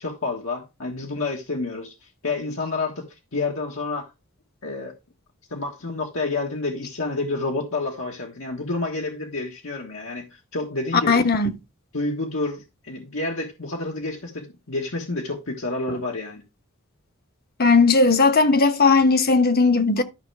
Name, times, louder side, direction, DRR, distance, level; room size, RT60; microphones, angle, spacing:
voice 1, 0.0-3.1 3.3-4.1 4.6-4.9 5.5-11.2 11.9-16.4, left 3 dB, 75° left, 1.5 m, -29 dB
voice 2, 11.1-11.5 17.6-20.0, left 4 dB, 50° left, 1.0 m, -17 dB
12.0 x 5.8 x 3.4 m
head